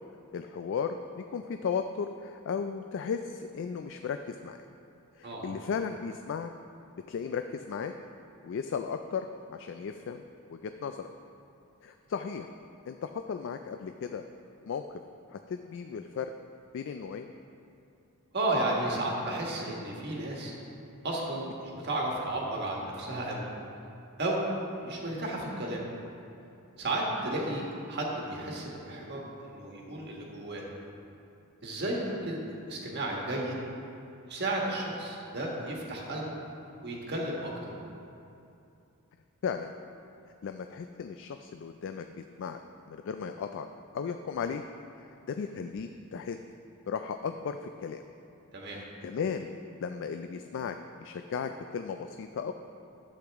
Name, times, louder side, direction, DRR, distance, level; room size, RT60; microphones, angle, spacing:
voice 1, 0.3-4.6 5.2-6.5 7.1-7.9 8.4-10.2 10.5-11.0 11.8-12.5 12.9-14.2 14.7-14.9 15.3-16.3 16.7-17.3 39.4-39.7 40.4-42.6 42.9-43.7 43.9-44.6 45.3-46.4 46.9-48.0 48.7-49.5 49.8-52.5, left 6 dB, 55° left, 7 dB, 0.3 m, -35 dB
voice 2, 18.3-20.5 21.0-23.5 24.2-24.4 24.8-25.8 26.8-30.7 31.6-33.6 34.3-36.4 36.8-37.7 48.5-48.8, right 1 dB, 50° right, -2 dB, 1.5 m, -33 dB
11.5 x 8.0 x 3.5 m, 2.7 s
head